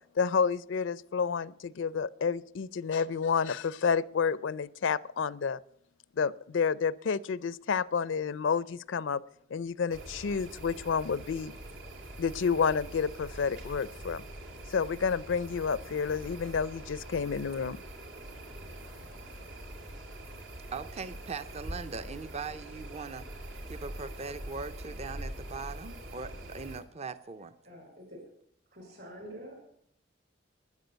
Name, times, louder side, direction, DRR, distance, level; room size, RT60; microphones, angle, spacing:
voice 1, 0.2-5.6 6.2-9.2 9.5-11.5 12.2-14.2 14.7-17.8, left 6 dB, 70° left, 21 dB, 0.5 m, -30 dB
sound 1, 9.9-26.8, right 1 dB, 80° right, 2.4 m, -44 dB
voice 2, 20.7-23.3 23.7-27.5, right 4 dB, 35° right, 13 dB, 0.6 m, -40 dB
voice 3, 27.6-28.2 28.7-29.7, equal, 55° right, 3 dB, 6.6 m, -47 dB
13.0 x 9.6 x 7.9 m, 0.66 s
head